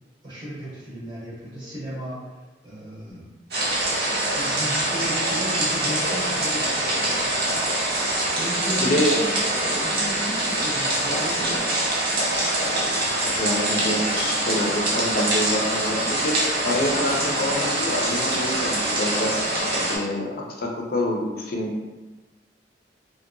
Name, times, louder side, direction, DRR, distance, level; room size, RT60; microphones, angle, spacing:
voice 1, 0.2-2.2 2.6-3.3 4.3-7.3 8.4-11.7, equal, 25° right, -10 dB, 0.7 m, -34 dB
sound 1, 1.5-2.2 3.1-4.2 5.0-7.1 8.4-10.2 10.8-12.1 12.4-17.1, equal, 5° left, 0.8 m, -42 dB
sound 2, 3.5-20.0, right 1 dB, 60° right, 0.7 m, -24 dB
voice 2, 8.8-9.1 13.4-19.3 19.9-20.3 20.6-21.8, left 1 dB, 55° left, 1 dB, 0.4 m, -26 dB
2.7 x 2.1 x 2.5 m, 1.2 s
head